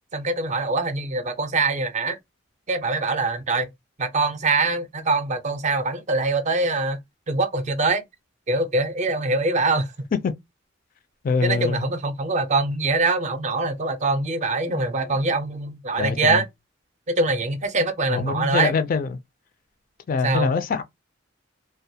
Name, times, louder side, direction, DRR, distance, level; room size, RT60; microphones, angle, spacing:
voice 1, 0.1-2.2 2.7-3.7 4.0-7.0 7.3-8.0 8.5-9.9 11.4-16.4 17.1-18.7 20.2-20.5, right 3 dB, 35° right, 0.5 m, -23 dB
voice 2, 11.2-11.9 14.6-15.2 16.0-16.4 18.1-19.2 20.1-20.8, left 5 dB, 45° left, 0.3 m, -24 dB
2.2 x 2.2 x 2.7 m
head